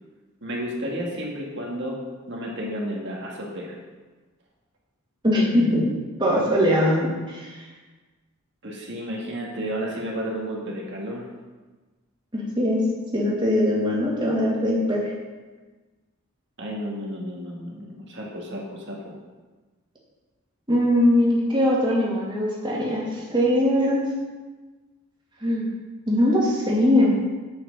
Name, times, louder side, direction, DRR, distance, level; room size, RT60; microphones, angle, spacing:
voice 1, 0.4-2.0 2.3-3.7 8.6-11.2 16.6-19.0, equal, 55° right, -2 dB, 2.0 m, -32 dB
voice 2, 5.2-5.9 6.2-7.5 12.3-12.8 13.1-15.0 20.7-24.1 25.4-25.7 26.1-27.2, left 1 dB, 20° right, -5 dB, 2.3 m, -21 dB
7.8 x 5.9 x 6.6 m, 1.3 s
head